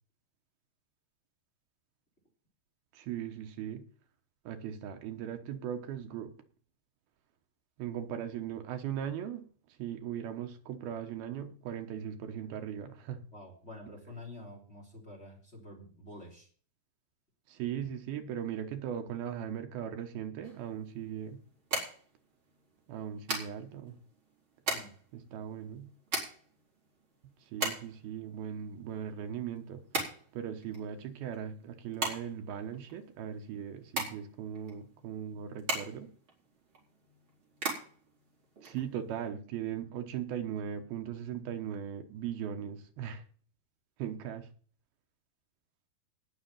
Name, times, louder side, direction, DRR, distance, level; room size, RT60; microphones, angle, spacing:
voice 1, 2.9-3.8 4.5-6.3 7.8-9.5 9.8-13.2 17.5-21.4 22.9-24.0 25.1-25.9 27.5-36.1 38.6-43.2 44.0-44.5, right 9 dB, 75° right, 3.0 m, -39 dB
voice 2, 13.3-16.5 24.7-24.9, left 2 dB, 15° left, 3.6 m, -48 dB
sound 1, 20.4-39.3, right 3 dB, 30° right, 4.9 m, -40 dB
19.0 x 6.3 x 5.6 m
omnidirectional pair, 4.5 m